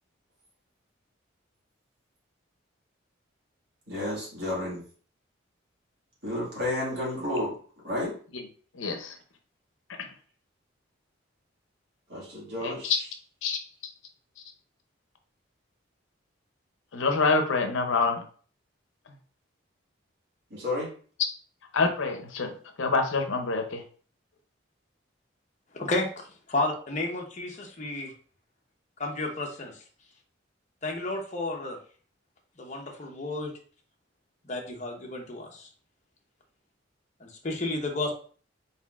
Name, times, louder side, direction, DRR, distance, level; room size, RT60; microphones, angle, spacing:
voice 1, 3.9-4.8 6.2-7.5 7.8-8.1 12.1-12.9 20.5-20.9, left 1 dB, 55° right, 1.9 m, -31 dB
voice 2, 8.7-9.2 10.0-10.1 12.6-13.0 13.4-13.6 16.9-18.2 21.7-23.8, left 4 dB, 80° left, 0.7 m, -26 dB
voice 3, 25.7-28.1 29.0-29.8 30.8-31.8 32.6-33.5 34.5-35.7 37.2-38.1, left 2 dB, 35° left, 0.8 m, -32 dB
4.1 x 4.0 x 2.4 m
head